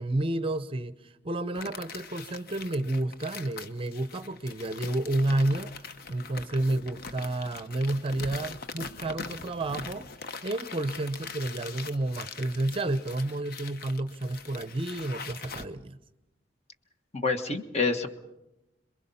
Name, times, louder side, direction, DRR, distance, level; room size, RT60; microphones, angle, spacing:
voice 1, 0.0-5.7 6.1-10.1 10.4-16.0, right 2 dB, 30° right, 12 dB, 0.7 m, -30 dB
sound 1, 1.5-15.6, left 5 dB, 55° left, 1.0 m, -42 dB
voice 2, 17.1-18.1, left 4 dB, 35° left, 7 dB, 1.4 m, -27 dB
27.0 x 22.0 x 5.6 m, 0.95 s
head